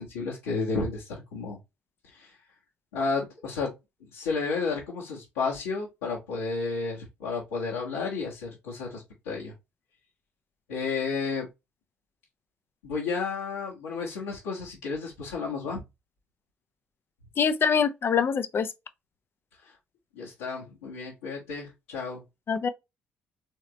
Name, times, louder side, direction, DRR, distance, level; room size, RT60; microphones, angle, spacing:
voice 1, 0.0-1.6 2.1-2.3 2.9-3.7 4.0-9.5 10.7-11.5 12.8-15.8 19.6-19.7 20.1-22.2, left 4 dB, 75° left, 1.4 m, -32 dB
voice 2, 17.4-18.7 22.5-22.7, left 6 dB, 40° left, 0.7 m, -24 dB
4.3 x 3.8 x 3.2 m
figure-of-eight pair, 45°, 6 cm